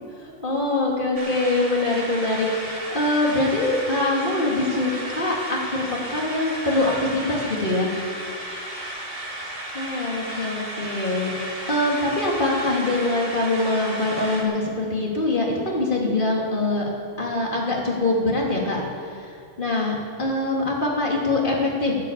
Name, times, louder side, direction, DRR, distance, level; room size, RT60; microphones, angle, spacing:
voice 1, 0.2-5.8 6.1-7.9 9.7-16.8 17.2-22.0, left 2 dB, 45° left, -2 dB, 2.9 m, -24 dB
sound 1, 1.1-14.4, right 1 dB, 50° right, 2.3 m, -34 dB
13.5 x 9.1 x 8.2 m, 2.5 s
omnidirectional pair, 1.2 m